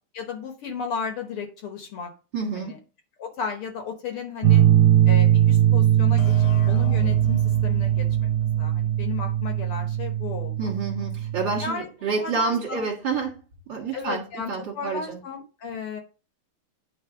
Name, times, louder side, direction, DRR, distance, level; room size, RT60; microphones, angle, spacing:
voice 1, 0.1-2.1 2.5-2.8 3.2-4.7 5.1-8.3 8.6-10.7 11.6-11.9 12.1-12.8 13.9-16.0, left 5 dB, 60° left, 5 dB, 1.6 m, -34 dB
voice 2, 2.3-2.7 10.6-13.4 13.7-15.2, right 4 dB, 45° right, -4 dB, 2.1 m, -28 dB
sound 1, 4.4-11.7, right 11 dB, 80° right, 1.9 m, -20 dB
sound 2, 6.2-9.7, left 6 dB, 85° left, 2.1 m, -40 dB
9.4 x 3.3 x 5.0 m, 0.34 s
omnidirectional pair, 3.4 m